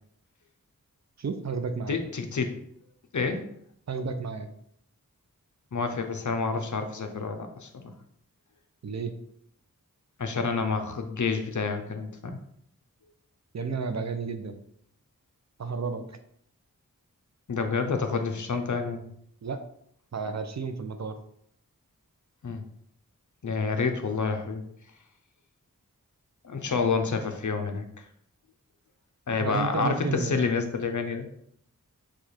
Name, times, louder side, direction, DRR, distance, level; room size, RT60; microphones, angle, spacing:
voice 1, 1.2-2.0 3.9-4.5 8.8-9.1 13.5-14.6 15.6-16.2 19.4-19.6 20.1-21.1 29.4-30.5, right 5 dB, 50° right, 8 dB, 0.5 m, -32 dB
voice 2, 1.9-2.6 3.1-3.5 5.7-7.9 10.2-12.4 17.5-19.1 22.4-22.6 23.4-24.6 26.4-28.0 29.3-31.3, left 4 dB, 60° left, 6 dB, 0.6 m, -29 dB
4.8 x 2.4 x 4.3 m, 0.69 s
wide cardioid pair, 60°, 34 cm